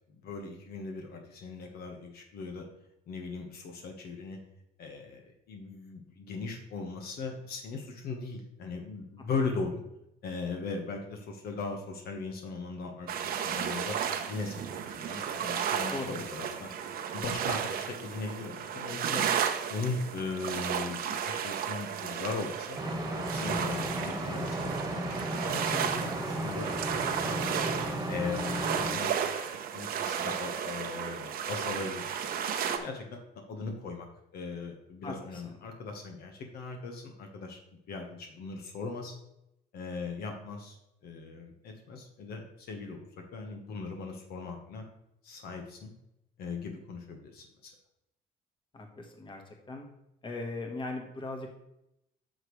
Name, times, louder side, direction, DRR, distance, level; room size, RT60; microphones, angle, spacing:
voice 1, 0.1-2.7 3.1-4.4 4.8-9.8 10.2-14.0 14.3-16.7 17.1-19.3 19.7-22.8 23.3-27.6 28.1-32.3 32.8-33.2 33.5-34.1 34.3-37.6 37.9-39.1 39.7-40.8 41.0-44.8 45.2-45.9 46.4-47.7, left 4 dB, 65° left, 3 dB, 1.4 m, -39 dB
sound 1, 13.1-32.8, right 8 dB, 65° right, 0.9 m, -34 dB
voice 2, 15.9-16.2 35.0-35.2 48.7-49.4 49.7-49.8 50.2-51.5, left 2 dB, 30° left, 3 dB, 1.6 m, -38 dB
sound 2, 22.7-28.9, right 1 dB, 20° right, 1.5 m, -34 dB
8.9 x 6.5 x 3.2 m, 0.83 s
cardioid pair, 110°, 17 cm